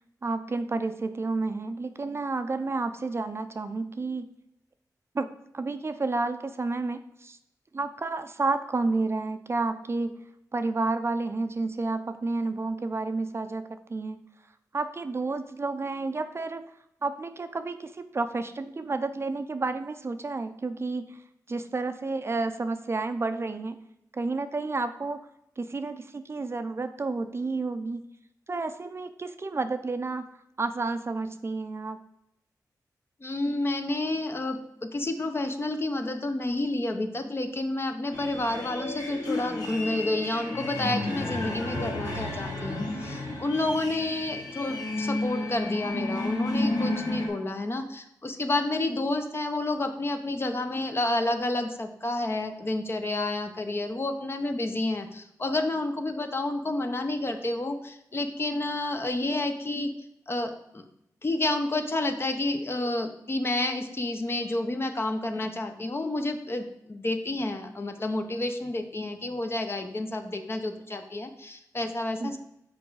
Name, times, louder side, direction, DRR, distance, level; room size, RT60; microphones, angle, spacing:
voice 1, 0.2-4.3 5.1-5.3 5.5-7.4 7.7-10.2 10.5-14.2 14.7-16.6 17.0-21.2 21.5-23.8 24.1-25.2 25.6-28.0 28.5-30.3 30.6-32.0 72.2-72.4, right 3 dB, 40° right, 9 dB, 0.5 m, -30 dB
voice 2, 33.2-59.9 60.3-60.8 61.2-72.4, left 2 dB, 35° left, 6 dB, 0.8 m, -30 dB
sound 1, 38.1-47.3, left 2 dB, 85° left, 1.7 m, -32 dB
6.1 x 4.8 x 4.7 m, 0.81 s
cardioid pair, 75°, 7 cm